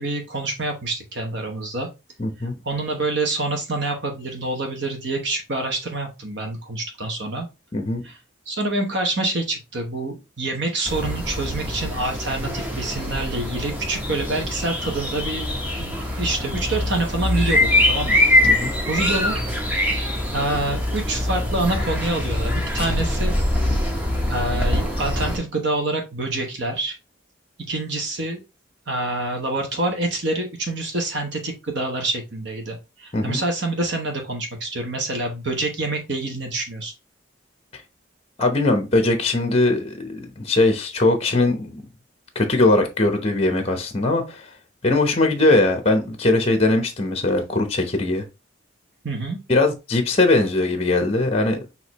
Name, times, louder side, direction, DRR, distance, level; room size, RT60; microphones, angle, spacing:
voice 1, 0.0-1.9 2.6-7.5 8.0-8.2 8.5-15.5 15.8-19.4 20.3-23.3 24.3-26.9 27.7-28.4 28.9-36.9 49.0-49.4, right 2 dB, 60° right, 1.0 m, -26 dB
voice 2, 2.2-2.5 7.7-8.0 18.4-18.7 33.1-33.4 38.4-41.8 42.3-44.5 44.8-48.2 49.5-51.6, left 2 dB, 30° left, 0.8 m, -20 dB
sound 1, 10.8-25.4, left 1 dB, 10° right, 0.8 m, -23 dB
6.3 x 2.9 x 2.9 m
head